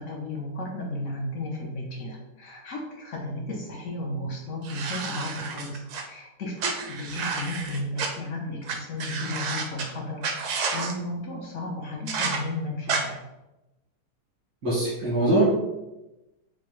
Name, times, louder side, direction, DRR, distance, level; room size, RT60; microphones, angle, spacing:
voice 1, 0.0-13.2, left 1 dB, 60° left, -1 dB, 0.8 m, -34 dB
sound 1, 4.6-6.0 6.6-8.1 8.7-8.8 9.0-9.8 10.2-10.9 12.1-12.4 12.9-13.0, right 5 dB, 70° right, 1.1 m, -30 dB
voice 2, 14.6-15.5, right 1 dB, 90° right, -11 dB, 2.4 m, -22 dB
5.9 x 2.2 x 3.1 m, 0.99 s
omnidirectional pair, 1.9 m